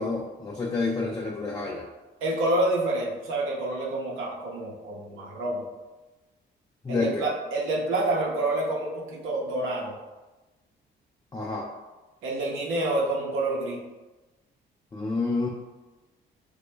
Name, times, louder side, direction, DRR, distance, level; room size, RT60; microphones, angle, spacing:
voice 1, 0.0-1.9 6.8-7.2 11.3-11.7 14.9-15.5, left 3 dB, 20° left, -2 dB, 0.4 m, -29 dB
voice 2, 2.2-5.6 6.9-9.9 12.2-13.8, right 2 dB, 80° right, -2 dB, 0.6 m, -28 dB
3.0 x 2.1 x 3.1 m, 1.2 s
cardioid pair, 90°, 20 cm